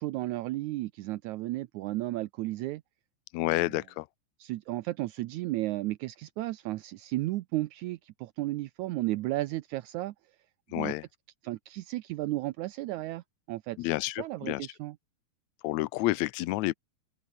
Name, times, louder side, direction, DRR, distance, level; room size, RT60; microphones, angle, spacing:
voice 1, 0.0-2.8 3.5-3.6 4.4-10.1 10.8-10.9 11.4-13.8 14.2-15.0, right 17 dB, 75° right, 2.0 m, -33 dB
voice 2, 3.3-4.1 10.7-11.1 13.8-14.7 15.6-16.7, left 18 dB, 75° left, 1.9 m, -29 dB
open air
omnidirectional pair, 3.5 m